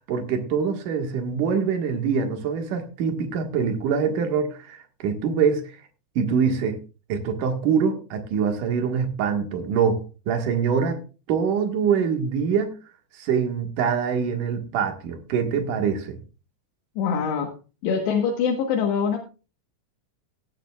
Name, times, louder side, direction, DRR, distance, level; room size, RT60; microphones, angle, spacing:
voice 1, 0.1-5.7 6.2-6.8 7.1-12.7 13.2-16.2, right 6 dB, 60° right, 2.7 m, -24 dB
voice 2, 17.0-17.5 17.8-19.2, left 6 dB, 80° left, 3.5 m, -24 dB
17.5 x 10.5 x 2.4 m
omnidirectional pair, 5.0 m